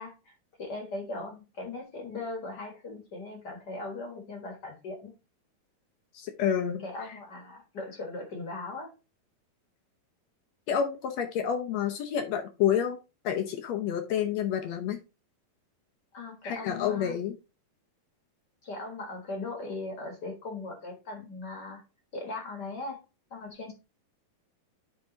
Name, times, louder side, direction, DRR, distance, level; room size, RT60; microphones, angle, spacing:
voice 1, 0.0-5.1 6.8-8.9 16.1-17.2 18.6-21.8 22.1-23.0 23.3-23.7, left 2 dB, 45° left, 3 dB, 1.4 m, -39 dB
voice 2, 6.1-6.8 10.7-13.0 13.2-15.0 16.4-17.3, left 8 dB, 75° left, 6 dB, 1.5 m, -29 dB
10.0 x 3.6 x 3.9 m, 0.29 s
omnidirectional pair, 4.1 m